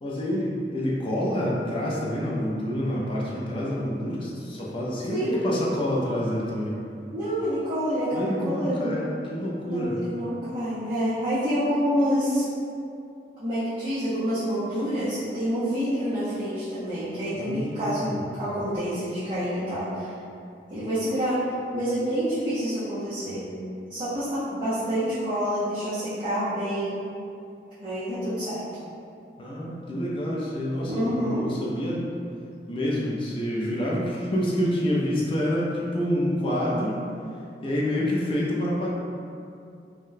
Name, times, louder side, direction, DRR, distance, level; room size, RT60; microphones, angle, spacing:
voice 1, 0.0-6.8 8.1-10.0 17.3-18.2 29.4-32.1 32.7-37.0 37.6-38.9, equal, 30° left, -5 dB, 0.4 m, -27 dB
voice 2, 5.1-5.4 7.1-9.0 9.6-12.4 13.4-20.1 20.7-21.4 21.7-23.5 23.9-27.0 27.8-28.6 30.9-31.4, equal, 25° right, -14 dB, 0.7 m, -27 dB
3.6 x 2.2 x 2.6 m, 2.5 s
head